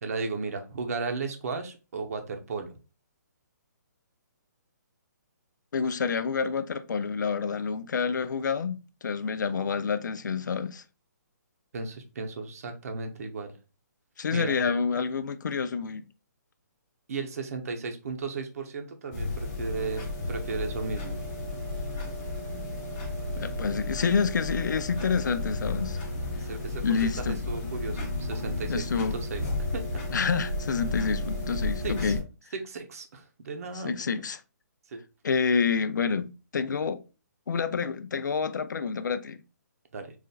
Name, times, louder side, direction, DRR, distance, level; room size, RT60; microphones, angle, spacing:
voice 1, 0.0-2.7 11.7-13.5 14.3-14.5 17.1-21.2 26.4-29.4 29.7-30.0 31.8-32.1 32.6-34.1 34.9-35.0 39.9-40.1, right 4 dB, 55° right, 0.7 m, -35 dB
voice 2, 5.7-10.8 14.2-16.0 23.4-26.0 26.8-27.4 28.7-29.2 30.1-32.2 33.7-34.4 35.2-37.0 37.5-39.4, left 5 dB, 80° left, 0.4 m, -28 dB
sound 1, 19.1-32.2, left 2 dB, 20° left, 0.7 m, -33 dB
4.1 x 2.4 x 2.2 m
hypercardioid pair, 160°, 10 cm